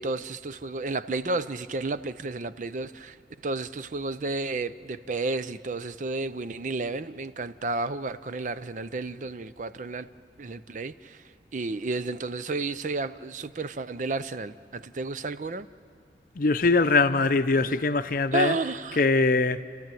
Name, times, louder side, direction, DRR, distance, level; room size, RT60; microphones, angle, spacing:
voice 1, 0.0-3.2 3.4-10.1 10.4-11.2 11.5-15.7 18.3-19.0, right 3 dB, 45° right, 0.5 m, -31 dB
voice 2, 16.4-18.6 19.0-19.6, left 3 dB, 50° left, 0.6 m, -22 dB
30.0 x 13.5 x 9.1 m
head